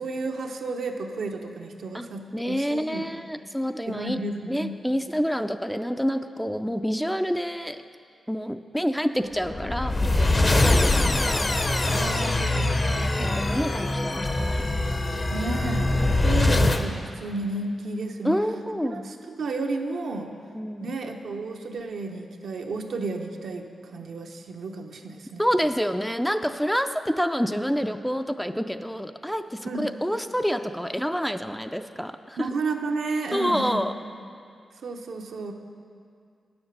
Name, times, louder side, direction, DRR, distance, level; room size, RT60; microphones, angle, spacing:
voice 1, 0.0-3.1 3.9-4.7 11.9-13.5 15.3-18.4 18.9-20.3 20.8-25.4 29.6-29.9 32.4-33.8 34.8-35.5, right 3 dB, 80° right, 3 dB, 0.8 m, -32 dB
voice 2, 1.9-4.2 4.5-7.8 8.3-11.4 13.0-14.6 18.2-19.1 20.5-20.9 25.4-32.5 33.3-33.9, equal, 5° left, 8 dB, 0.4 m, -28 dB
sound 1, 9.4-16.8, left 2 dB, 35° left, 0.7 m, -23 dB
9.5 x 7.1 x 6.6 m, 2.3 s
cardioid pair, 75°, 0 cm